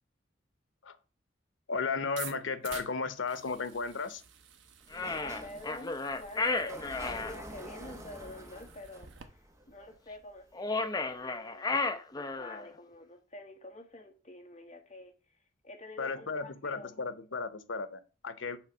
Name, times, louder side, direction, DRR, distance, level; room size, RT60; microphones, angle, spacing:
voice 1, 1.7-4.2 16.0-18.6, left 4 dB, 90° left, 0.8 m, -35 dB
sound 1, 2.0-9.2, right 9 dB, 90° right, 0.8 m, -50 dB
Sliding door, 4.8-10.5, right 1 dB, 15° right, 0.8 m, -48 dB
sound 2, 4.9-7.3 10.5-12.7, left 3 dB, 20° left, 0.5 m, -33 dB
voice 2, 5.0-17.0, left 1 dB, 35° left, 1.5 m, -48 dB
6.6 x 3.3 x 6.0 m
head